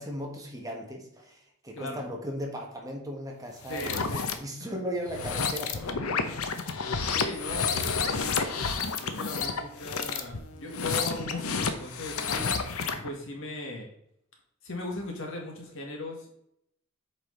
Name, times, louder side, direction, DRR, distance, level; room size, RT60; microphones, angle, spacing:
voice 1, 0.0-6.4 12.3-13.0, equal, 15° right, 0 dB, 1.6 m, -38 dB
sound 1, 3.6-4.3 5.0-13.1, left 5 dB, 85° left, 0.9 m, -30 dB
voice 2, 3.7-4.4 6.1-6.2 7.0-8.5 9.0-12.2 13.0-13.9 14.6-16.3, left 2 dB, 65° left, 1 dB, 2.0 m, -38 dB
8.0 x 5.2 x 4.0 m, 0.74 s
head